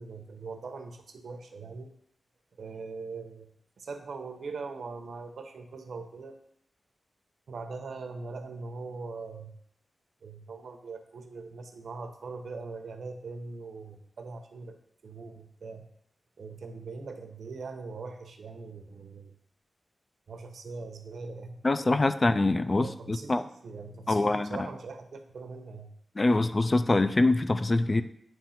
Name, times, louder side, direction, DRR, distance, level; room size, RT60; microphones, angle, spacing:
voice 1, 0.0-1.9 2.6-3.5 3.8-6.3 7.5-9.5 10.2-14.8 15.0-15.9 16.4-19.3 20.3-21.6 21.8-22.0 22.8-25.9, right 4 dB, 70° right, 6 dB, 0.8 m, -41 dB
voice 2, 21.6-23.4 24.1-24.6 26.2-28.0, left 2 dB, 25° left, 11 dB, 0.3 m, -24 dB
8.9 x 3.1 x 5.7 m, 0.70 s
wide cardioid pair, 175°, 0 cm